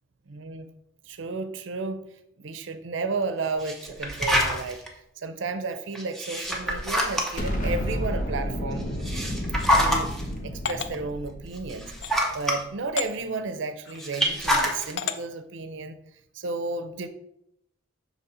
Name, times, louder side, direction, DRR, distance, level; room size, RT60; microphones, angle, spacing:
voice 1, 0.3-0.7 1.1-2.1 2.4-8.9 9.7-10.1 10.4-11.9 12.3-16.0 16.3-17.1, right 3 dB, 75° right, 10 dB, 0.6 m, -33 dB
sound 1, 3.6-4.9 6.0-7.5 8.8-10.2 10.9-11.0 11.6-12.6 14.0-14.9, equal, ahead, 0.7 m, -25 dB
Explosion, 7.4-12.5, equal, 45° left, 0.9 m, -31 dB
sound 2, 9.5-9.7 10.6-10.9 11.9-12.2 13.0-13.1 13.8-14.1 15.0-15.2, left 7 dB, 60° left, 0.4 m, -32 dB
6.0 x 4.1 x 4.2 m, 0.77 s
head